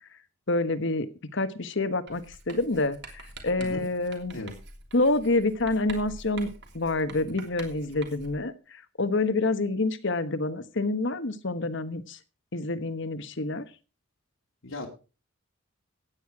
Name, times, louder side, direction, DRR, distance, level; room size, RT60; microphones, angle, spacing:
voice 1, 0.5-1.1 1.3-4.4 4.9-6.5 6.7-12.2 12.5-13.6, left 2 dB, 60° left, 12 dB, 1.3 m, -27 dB
Writing, 2.1-8.5, right 3 dB, 55° right, 3.1 m, -46 dB
voice 2, 3.6-3.8 4.3-4.5 14.6-14.9, left 2 dB, 80° left, -1 dB, 2.4 m, -36 dB
16.0 x 9.4 x 4.8 m, 0.34 s
head